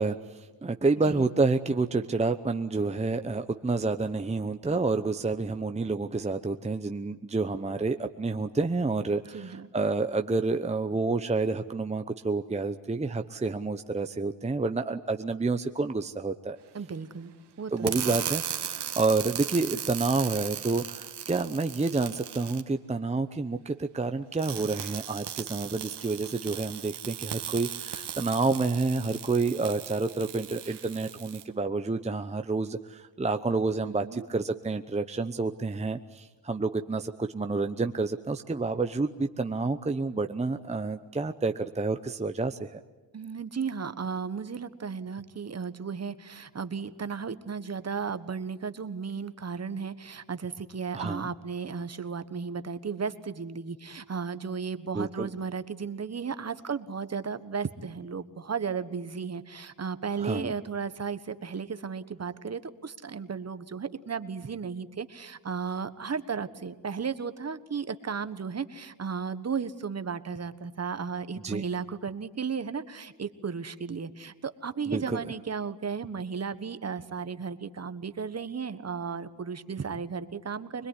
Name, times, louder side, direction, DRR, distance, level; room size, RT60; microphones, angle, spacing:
voice 1, 0.0-16.6 17.7-42.8 50.9-51.3 54.9-55.3 60.2-60.5 71.4-71.6 74.9-75.2, right 3 dB, 15° right, 7 dB, 0.9 m, -29 dB
voice 2, 9.3-9.7 16.7-17.3 17.6-18.0 33.9-34.3 43.1-80.9, right 6 dB, 35° right, 12 dB, 1.4 m, -34 dB
sound 1, 17.8-22.6 24.3-31.4, right 10 dB, 70° right, 1.8 m, -37 dB
25.5 x 21.0 x 9.9 m, 1.2 s
cardioid pair, 90°, 42 cm